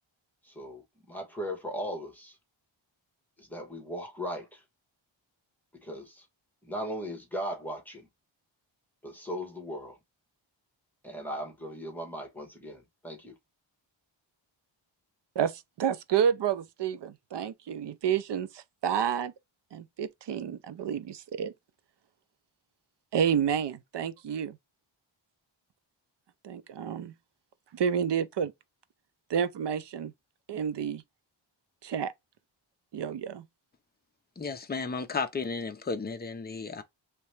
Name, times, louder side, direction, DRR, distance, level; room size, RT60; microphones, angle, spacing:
voice 1, 0.4-2.4 3.4-4.6 5.8-6.3 6.6-8.1 9.0-10.0 11.0-13.4, equal, 5° left, 1.2 m, -38 dB
voice 2, 15.4-19.3 19.7-21.5 23.1-24.6 26.4-27.1 27.7-28.5 29.3-30.1 30.5-31.0 31.8-32.1 32.9-33.5, right 8 dB, 60° right, 0.5 m, -30 dB
voice 3, 34.4-36.8, left 4 dB, 20° left, 0.5 m, -33 dB
3.3 x 2.9 x 3.1 m
wide cardioid pair, 170°, 48 cm